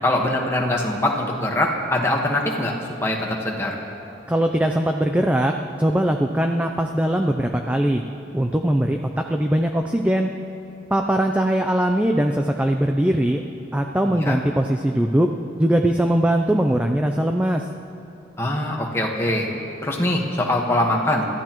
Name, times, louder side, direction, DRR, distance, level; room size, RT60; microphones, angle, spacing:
voice 1, 0.0-2.7 3.0-3.7 14.2-14.4 18.4-19.5 19.8-21.3, left 1 dB, 15° left, -1 dB, 1.4 m, -22 dB
voice 2, 4.3-5.5 5.8-8.0 8.3-9.0 9.3-10.3 10.9-13.4 13.7-15.3 15.6-17.6, right 1 dB, 5° right, 4 dB, 0.4 m, -20 dB
27.5 x 13.5 x 3.0 m, 2.8 s
head